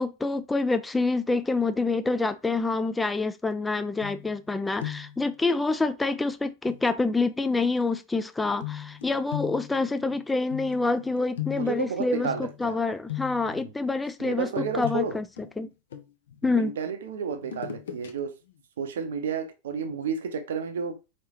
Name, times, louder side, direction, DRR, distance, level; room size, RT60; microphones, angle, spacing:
voice 1, 0.0-15.2 15.6-15.7 16.4-16.8, left 3 dB, 10° left, 0.3 m, -27 dB
sound 1, 4.0-4.5 4.8-5.3 6.7-6.8 8.6-12.7 13.1-13.6 14.6-16.4 17.4-18.1 18.5-18.6, left 12 dB, 60° left, 0.6 m, -38 dB
voice 2, 11.6-12.7 13.5-13.7 14.2-15.2 16.4-18.3 18.8-21.0, right 6 dB, 60° right, 0.7 m, -31 dB
4.3 x 3.2 x 2.9 m
figure-of-eight pair, 90°, 0 cm